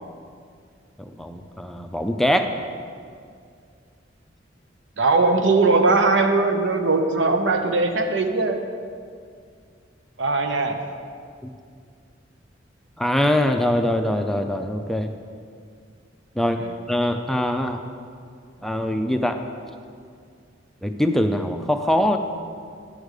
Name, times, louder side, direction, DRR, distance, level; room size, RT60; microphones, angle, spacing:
voice 1, 1.0-2.5 11.4-11.5 13.0-15.1 16.4-16.6 16.9-17.8 18.6-19.4 20.8-22.2, left 1 dB, ahead, 6 dB, 0.4 m, -23 dB
voice 2, 5.0-8.6 10.2-10.8 16.6-16.7, right 3 dB, 90° right, 5 dB, 0.8 m, -20 dB
10.5 x 4.9 x 6.5 m, 2.2 s
head